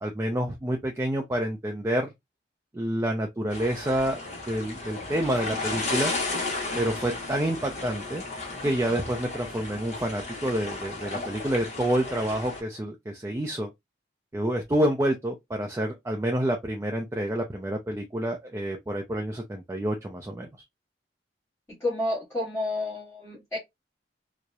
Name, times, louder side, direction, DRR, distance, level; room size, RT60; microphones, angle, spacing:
voice 1, 0.0-2.1 2.7-4.2 4.5-6.1 6.8-8.2 8.6-13.7 14.3-20.5, right 1 dB, 15° right, 0.3 m, -28 dB
sound 1, 3.5-12.6, left 3 dB, 40° left, 0.8 m, -34 dB
voice 2, 21.8-23.6, left 2 dB, 15° left, 1.0 m, -30 dB
2.7 x 2.0 x 2.2 m
head